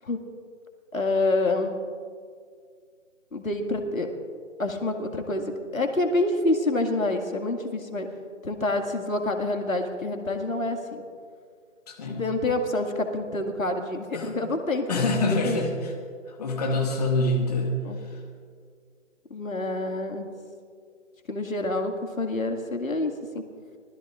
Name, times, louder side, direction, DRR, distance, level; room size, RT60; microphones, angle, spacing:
voice 1, 0.9-1.8 3.3-4.1 4.6-8.1 8.4-11.0 12.1-15.2 15.4-15.6 17.8-18.0 19.3-20.3 21.3-23.5, left 2 dB, 85° left, 4 dB, 2.2 m, -27 dB
voice 2, 11.9-12.2 14.1-14.3 14.9-15.7 16.3-17.8 18.1-18.2, left 2 dB, 30° left, 1 dB, 1.9 m, -25 dB
25.5 x 20.0 x 2.5 m, 2.1 s
figure-of-eight pair, 155°, 39 cm